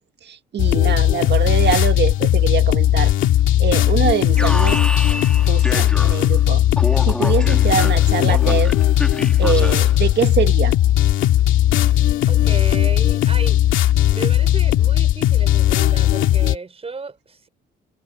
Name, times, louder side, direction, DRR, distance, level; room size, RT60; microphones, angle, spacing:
voice 1, 0.2-3.1 3.6-4.8 5.5-6.6 7.0-8.8 9.4-10.8, right 8 dB, 60° right, 1.9 m, -23 dB
sound 1, 0.6-16.6, left 13 dB, 85° left, 2.2 m, -17 dB
Alarm, 4.4-6.4 6.8-10.0, left 1 dB, 5° left, 1.9 m, -29 dB
voice 2, 12.3-13.6 14.1-17.5, right 4 dB, 30° right, 5.1 m, -33 dB
cardioid pair, 90°, 20 cm